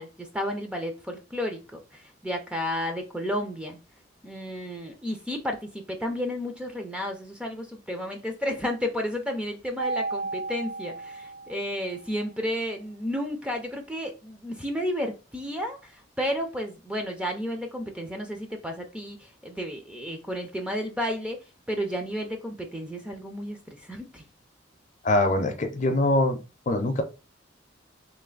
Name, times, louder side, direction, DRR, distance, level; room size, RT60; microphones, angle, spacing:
voice 1, 0.0-3.8 4.2-21.4 21.7-24.2, equal, 5° right, 3 dB, 0.5 m, -32 dB
Mallet percussion, 9.8-12.0, right 3 dB, 90° right, 0.3 m, -33 dB
voice 2, 25.0-26.4 26.7-27.0, left 1 dB, 40° left, 7 dB, 0.6 m, -23 dB
3.3 x 3.1 x 3.9 m, 0.31 s
head